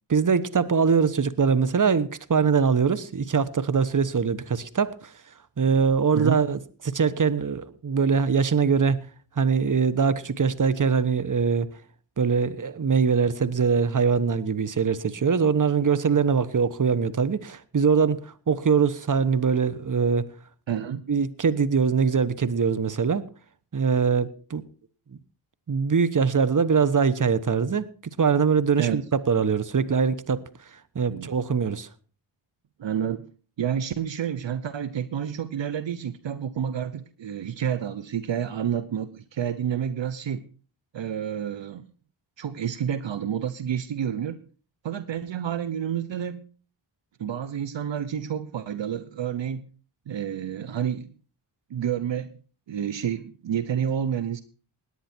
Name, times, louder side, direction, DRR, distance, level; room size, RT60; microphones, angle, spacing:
voice 1, 0.1-5.1 5.6-9.0 9.4-11.7 12.2-20.3 21.1-23.3 23.7-24.6 25.7-27.9 28.2-30.4 30.9-31.9, right 5 dB, 40° right, 1.2 m, -22 dB
voice 2, 20.7-21.1 28.8-29.0 31.1-31.3 32.8-33.3 33.6-40.5 40.9-41.9 42.4-44.4 44.8-46.4 47.2-49.7 50.1-51.1 51.7-52.3 52.7-54.4, right 9 dB, 65° right, 0.9 m, -29 dB
18.0 x 10.0 x 4.5 m
cardioid pair, 50°, 48 cm